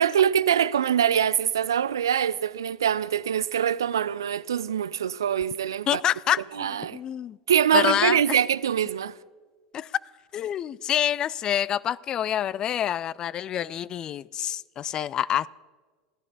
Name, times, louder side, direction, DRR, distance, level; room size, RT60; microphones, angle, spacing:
voice 1, 0.0-6.0 6.6-7.0 7.5-9.1, right 9 dB, 75° right, 0.4 m, -24 dB
voice 2, 5.9-7.4 7.7-8.4 9.7-9.9 10.3-15.5, left 10 dB, 35° left, 0.4 m, -27 dB
16.5 x 14.0 x 3.9 m
figure-of-eight pair, 80°, 2 cm